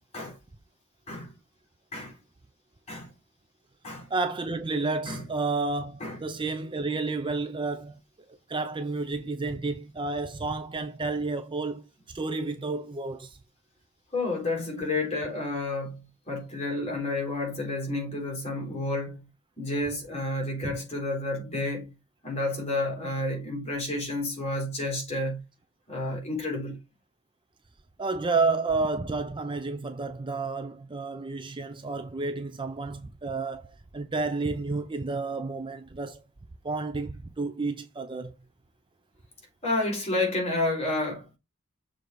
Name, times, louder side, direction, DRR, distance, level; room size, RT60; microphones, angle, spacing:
voice 1, 4.1-8.0 8.5-11.8 12.1-13.4 20.6-20.8 28.0-36.2 36.6-38.3, right 3 dB, 20° right, 0.5 m, -31 dB
voice 2, 14.1-19.2 19.6-21.9 22.2-25.4 25.9-26.8 39.6-41.3, left 2 dB, 30° left, 3.9 m, -30 dB
6.7 x 3.9 x 4.5 m
head